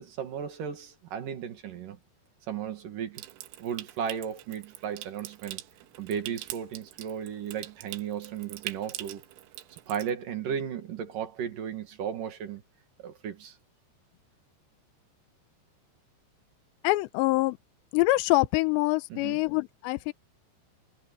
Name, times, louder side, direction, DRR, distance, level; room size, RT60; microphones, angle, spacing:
voice 1, 0.0-2.0 2.5-3.2 3.6-5.6 6.0-9.2 9.7-12.6 13.0-13.6 19.1-19.4, right 8 dB, 55° right, 3.2 m, -35 dB
Water tap faucet / Sink (filling or washing) / Trickle dribble, 3.2-10.1, right 15 dB, 85° right, 3.6 m, -43 dB
voice 2, 16.8-17.6 17.9-20.1, left 21 dB, 80° left, 2.8 m, -25 dB
omnidirectional pair, 5.4 m